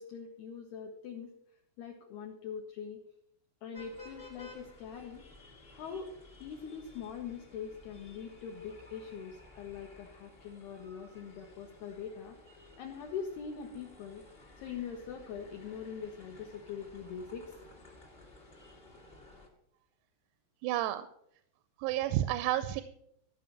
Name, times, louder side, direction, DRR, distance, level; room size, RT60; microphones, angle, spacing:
voice 1, 0.0-1.3 1.8-3.0 3.6-5.2 5.7-6.1 6.4-12.4 12.8-14.2 14.6-17.5, left 7 dB, 80° left, 1 dB, 2.3 m, -42 dB
sound 1, 3.7-19.5, left 2 dB, 45° left, 0.7 m, -55 dB
voice 2, 20.6-21.1 21.8-22.8, right 13 dB, 90° right, 12 dB, 3.4 m, -30 dB
14.5 x 5.6 x 7.2 m, 0.72 s
omnidirectional pair, 6.0 m